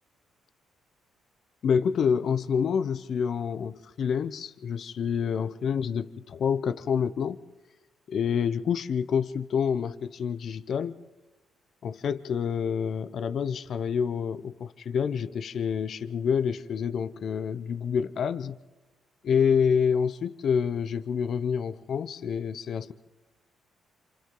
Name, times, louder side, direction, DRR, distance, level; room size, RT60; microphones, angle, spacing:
voice 1, 1.6-7.4 8.1-11.0 11.8-18.6 19.2-22.9, left 7 dB, 60° left, 11 dB, 0.7 m, -27 dB
28.0 x 26.5 x 3.8 m, 1.0 s
cardioid pair, 90°, 0 cm